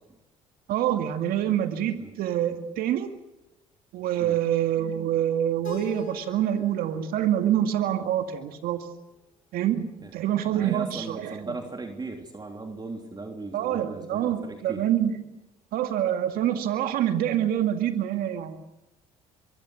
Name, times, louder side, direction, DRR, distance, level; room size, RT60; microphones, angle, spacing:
voice 1, 0.7-3.1 3.9-8.9 9.5-11.5 13.5-15.2 15.7-18.6, right 11 dB, 65° right, 7 dB, 2.1 m, -26 dB
Keyboard (musical), 5.6-8.6, left 9 dB, 65° left, 4.3 m, -45 dB
voice 2, 10.4-14.8, right 3 dB, 25° right, 3 dB, 3.5 m, -38 dB
24.0 x 23.5 x 6.3 m, 0.93 s
hypercardioid pair, 55°, 16 cm